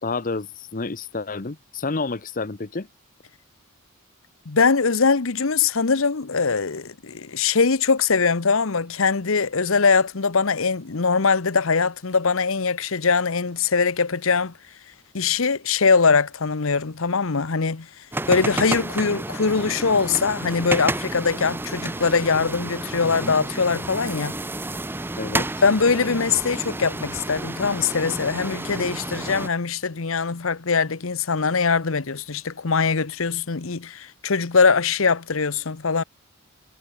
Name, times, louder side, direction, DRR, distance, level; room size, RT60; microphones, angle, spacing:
voice 1, 0.0-2.9 23.0-23.4 25.2-25.5, left 3 dB, 40° left, 0.8 m, -29 dB
voice 2, 4.5-14.5 15.1-17.9 18.3-24.4 25.6-36.0, left 5 dB, 65° left, 1.0 m, -22 dB
sound 1, 18.1-29.5, right 2 dB, 10° right, 0.6 m, -30 dB
head